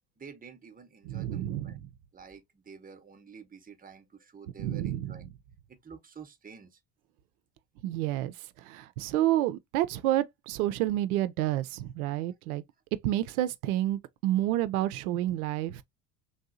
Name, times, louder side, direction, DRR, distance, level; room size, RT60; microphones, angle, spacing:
voice 1, 0.2-1.8 2.1-5.3 5.7-6.8 12.3-12.4, right 6 dB, 20° right, 0.8 m, -50 dB
voice 2, 1.1-1.7 4.6-5.2 7.8-8.3 8.7-12.6 13.0-15.8, right 14 dB, 70° right, 0.5 m, -29 dB
3.4 x 2.7 x 2.4 m
hypercardioid pair, 70°, 45 cm